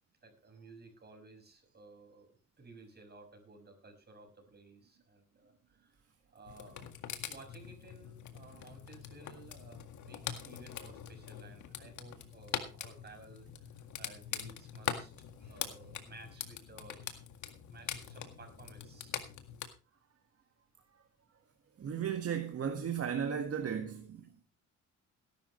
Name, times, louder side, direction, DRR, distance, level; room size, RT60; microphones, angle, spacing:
voice 1, 0.2-6.0 6.3-6.9 7.3-13.5 14.0-15.1 15.4-17.2 17.7-19.1, right 2 dB, 35° right, 6.1 m, -55 dB
sound 1, 6.5-19.7, left 9 dB, 75° left, 2.0 m, -43 dB
voice 2, 21.8-24.4, right 8 dB, 50° right, 1.8 m, -35 dB
18.0 x 11.5 x 3.2 m
cardioid pair, 90°, 30 cm